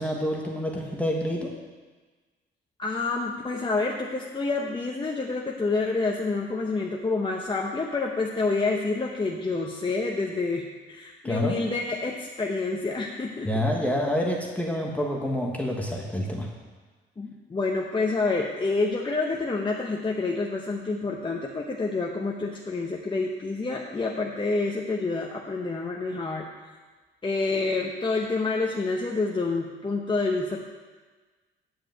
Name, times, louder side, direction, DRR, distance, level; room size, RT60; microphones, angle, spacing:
voice 1, 0.0-1.5 11.2-11.6 13.4-16.5, left 1 dB, 5° left, -1 dB, 1.3 m, -27 dB
voice 2, 2.8-13.5 17.2-26.5 27.2-30.6, left 3 dB, 25° left, -1 dB, 0.9 m, -28 dB
9.4 x 5.0 x 7.8 m, 1.3 s
cardioid pair, 90°, 20 cm